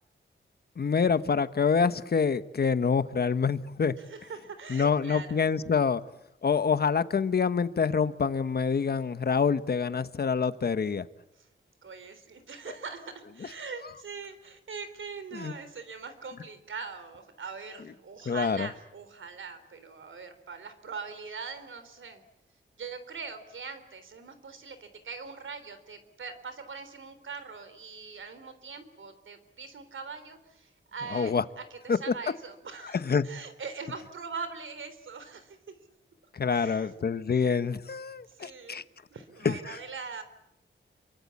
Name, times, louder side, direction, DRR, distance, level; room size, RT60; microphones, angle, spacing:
voice 1, 0.8-3.9 4.7-6.0 6.4-11.1 15.3-15.5 18.3-18.7 31.1-31.4 31.9-32.0 32.9-33.2 36.3-38.8 39.4-39.8, left 6 dB, 50° left, 13 dB, 1.1 m, -26 dB
voice 2, 4.0-5.4 11.4-11.5 11.8-22.2 22.8-35.6 36.5-37.0 38.3-38.8 39.1-40.2, right 5 dB, 80° right, 10 dB, 3.7 m, -42 dB
28.0 x 24.0 x 8.5 m, 0.84 s
wide cardioid pair, 155°, 20 cm